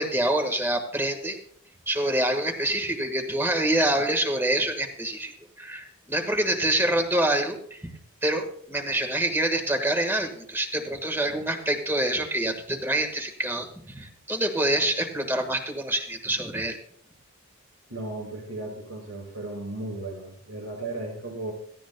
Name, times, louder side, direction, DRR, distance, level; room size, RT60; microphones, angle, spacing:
voice 1, 0.0-1.4 1.9-5.3 5.6-7.9 8.2-16.8, right 1 dB, 10° right, 4 dB, 1.4 m, -26 dB
voice 2, 17.9-21.5, right 2 dB, 85° right, 0 dB, 5.9 m, -35 dB
17.5 x 15.0 x 2.2 m, 0.65 s
head